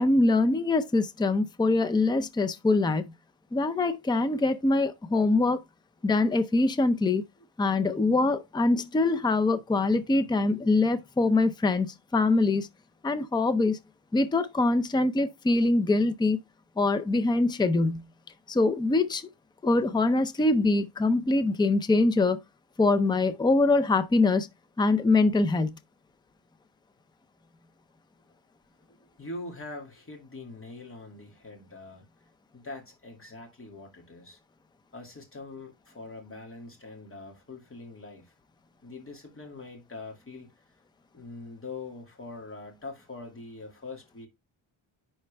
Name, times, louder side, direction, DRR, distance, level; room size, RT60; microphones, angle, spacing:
voice 1, 0.0-3.1 3.5-5.6 6.0-7.2 7.6-12.7 13.0-13.8 14.1-16.4 16.8-18.0 18.5-19.3 19.6-22.4 22.8-24.5 24.8-25.7, left 2 dB, 10° left, 0.4 m, -24 dB
voice 2, 28.9-32.0 32.5-34.4 34.9-38.3 38.8-40.6 41.1-44.3, left 3 dB, 25° left, 2.3 m, -43 dB
10.0 x 4.4 x 3.3 m
wide cardioid pair, 170°, 50 cm